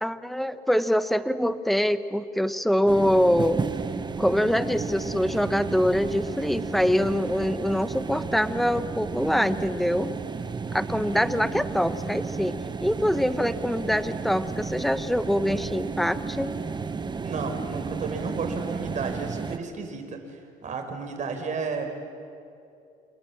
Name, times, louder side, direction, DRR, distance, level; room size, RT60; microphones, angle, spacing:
voice 1, 0.0-3.6 4.2-10.1 10.7-12.6 12.8-16.5, equal, ahead, 12 dB, 1.1 m, -24 dB
sound 1, 2.9-19.6, right 5 dB, 25° right, 1.2 m, -33 dB
voice 2, 11.1-11.6 17.2-21.9, right 4 dB, 45° right, 4 dB, 5.1 m, -33 dB
29.0 x 27.5 x 7.3 m, 2.5 s
cardioid pair, 110°, 17 cm